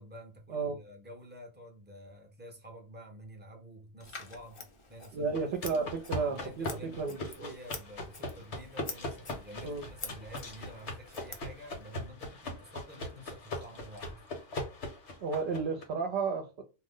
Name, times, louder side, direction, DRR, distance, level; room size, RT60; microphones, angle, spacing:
voice 1, 0.0-4.6 4.9-5.3 5.7-5.9 6.2-14.3, equal, 10° right, 0.5 m, -49 dB
Scissors, 4.0-12.0, left 4 dB, 35° left, 0.5 m, -48 dB
voice 2, 5.1-7.5 9.6-9.9 15.2-16.6, right 4 dB, 65° right, 0.8 m, -33 dB
sound 1, 5.3-15.8, left 2 dB, 75° left, 1.2 m, -40 dB
2.6 x 2.0 x 3.6 m
omnidirectional pair, 1.2 m